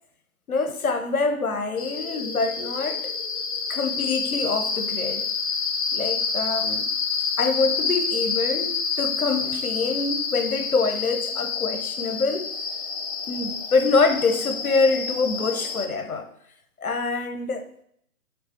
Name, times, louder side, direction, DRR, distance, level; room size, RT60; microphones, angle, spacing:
voice 1, 0.5-3.1 3.7-5.3 5.9-6.8 7.4-12.5 13.3-16.3 16.8-17.7, left 4 dB, 75° left, 7 dB, 1.0 m, -25 dB
sound 1, 1.8-15.9, left 5 dB, 50° left, 0.7 m, -28 dB
6.7 x 3.4 x 4.3 m, 0.70 s
figure-of-eight pair, 140°, 43 cm